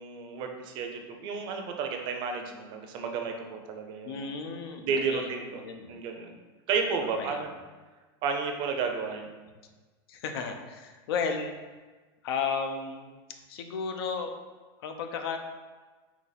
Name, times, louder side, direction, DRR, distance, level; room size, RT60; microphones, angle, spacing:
voice 1, 0.0-4.3 4.8-5.6 5.9-6.3 6.7-7.5 8.2-9.3, right 5 dB, 35° right, 4 dB, 0.5 m, -32 dB
voice 2, 4.0-5.9 7.0-7.4 10.1-11.5 12.2-13.1 13.5-14.3 14.8-15.4, left 5 dB, 75° left, 6 dB, 0.6 m, -34 dB
4.0 x 2.8 x 4.0 m, 1.3 s
supercardioid pair, 165°, 13 cm